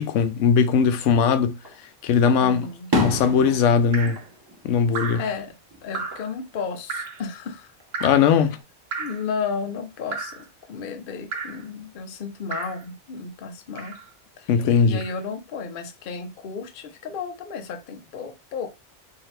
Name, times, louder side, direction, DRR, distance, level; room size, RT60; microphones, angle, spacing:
voice 1, 0.0-1.5 2.0-2.7 2.9-4.2 4.6-5.2 8.0-8.6 14.5-15.0, left 6 dB, 90° left, 0.9 m, -19 dB
Fireworks, 1.6-1.8 2.3-5.4 5.7-6.3 7.8-8.6, left 1 dB, 25° right, 0.6 m, -31 dB
voice 2, 2.4-2.9 5.1-5.5 5.8-7.7 8.3-8.4 9.0-14.0 14.4-14.5 14.8-18.7, left 5 dB, 55° left, 0.7 m, -33 dB
Drip, 3.9-4.3 4.9-5.3 5.9-6.3 6.9-7.2 7.9-8.3 8.9-9.3 10.1-10.5 11.3-11.6 12.5-12.8 13.8-14.1 15.0-15.2, right 4 dB, 65° right, 0.9 m, -33 dB
3.9 x 2.7 x 3.2 m
omnidirectional pair, 1.2 m